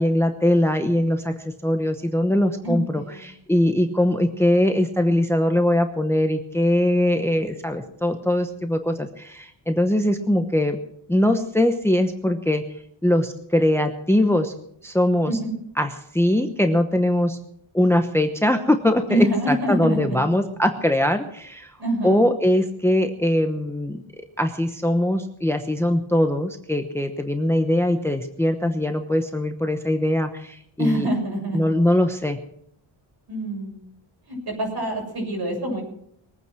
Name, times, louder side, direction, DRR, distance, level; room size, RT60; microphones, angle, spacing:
voice 1, 0.0-10.8 11.1-12.6 13.0-14.5 14.8-15.4 15.8-17.4 17.7-21.7 22.0-24.0 24.4-31.1 31.5-32.4, left 1 dB, 5° left, 7 dB, 0.9 m, -21 dB
voice 2, 2.6-3.2 15.3-15.5 19.1-20.2 21.8-22.3 30.8-31.7 33.3-33.8 34.3-35.8, right 1 dB, 50° right, 2 dB, 6.8 m, -26 dB
22.0 x 9.1 x 6.1 m, 0.71 s
wide cardioid pair, 130°, 48 cm